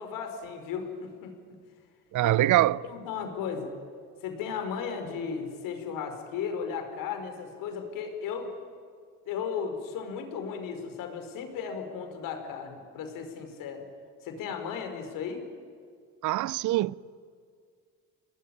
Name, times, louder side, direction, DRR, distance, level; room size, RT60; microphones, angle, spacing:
voice 1, 0.0-1.3 2.2-2.5 2.8-3.7 4.2-8.5 9.2-13.8 14.2-15.4, left 6 dB, 75° left, 4.8 m, -35 dB
voice 2, 2.1-2.8 16.2-16.9, right 15 dB, 60° right, 0.7 m, -23 dB
28.0 x 19.5 x 9.9 m
supercardioid pair, 80°, 33 cm